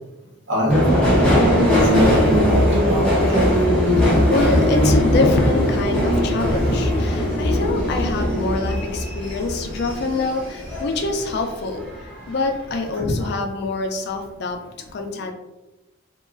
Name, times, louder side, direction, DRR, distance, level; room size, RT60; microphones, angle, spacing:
voice 1, 0.5-4.5 6.5-6.7 10.1-10.2 10.9-11.0 13.2-13.3, left 1 dB, 60° right, -3 dB, 0.8 m, -24 dB
Subway metro underground, 0.7-11.4 11.8-12.5 12.8-12.9, equal, 5° left, 0.7 m, -19 dB
voice 2, 4.3-14.6 14.9-15.3, left 3 dB, 50° left, 4 dB, 0.3 m, -25 dB
2.8 x 2.3 x 2.4 m, 1.0 s
head